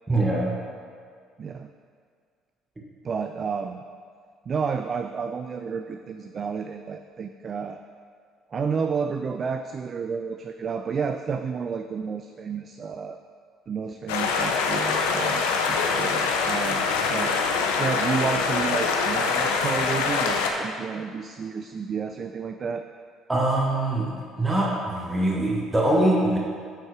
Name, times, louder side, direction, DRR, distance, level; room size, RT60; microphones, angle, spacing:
voice 1, 0.1-0.6 23.3-26.4, right 1 dB, 20° right, -3 dB, 1.4 m, -23 dB
voice 2, 1.4-1.7 3.0-3.8 4.5-7.8 8.5-13.2 13.7-22.8, right 6 dB, 45° right, 7 dB, 0.3 m, -31 dB
sound 1, 14.1-20.5, left 5 dB, 80° left, 0.6 m, -24 dB
7.9 x 4.5 x 4.8 m, 2.1 s
hypercardioid pair, 60°, 0 cm